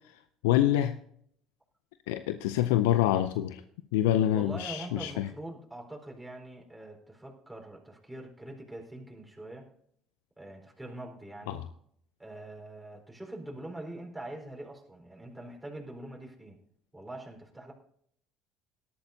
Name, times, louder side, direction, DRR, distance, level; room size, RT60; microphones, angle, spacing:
voice 1, 0.4-0.9 2.1-3.6 3.9-5.3 11.5-11.6, left 12 dB, 80° left, 11 dB, 0.4 m, -26 dB
voice 2, 4.3-9.7 10.4-11.6 12.2-16.6 16.9-17.7, right 1 dB, 10° right, 1 dB, 4.3 m, -43 dB
18.0 x 12.5 x 2.7 m, 0.67 s
hypercardioid pair, 70°, 0 cm